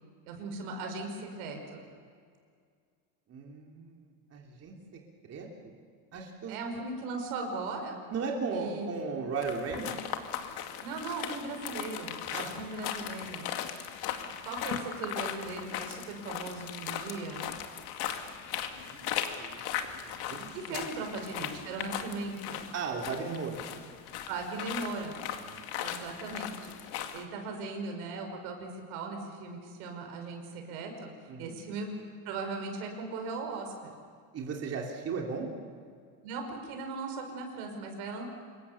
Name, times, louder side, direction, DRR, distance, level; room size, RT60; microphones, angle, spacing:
voice 1, 0.2-1.8 6.5-8.0 8.5-8.9 10.8-13.5 14.4-17.5 20.5-22.7 24.3-25.2 25.8-26.7 27.1-31.1 31.4-31.9 32.2-33.9 36.2-38.3, right 3 dB, 85° right, 4 dB, 5.6 m, -38 dB
voice 2, 3.3-5.7 6.1-6.5 8.1-10.0 12.3-12.5 18.8-19.1 19.4-19.6 20.0-20.8 22.7-23.6 25.4-25.7 31.3-31.6 34.3-35.5, right 5 dB, 35° right, 0 dB, 3.2 m, -36 dB
sound 1, 9.4-27.2, left 10 dB, 60° left, 2.3 m, -38 dB
26.5 x 22.0 x 7.1 m, 2.1 s
cardioid pair, 135°, 42 cm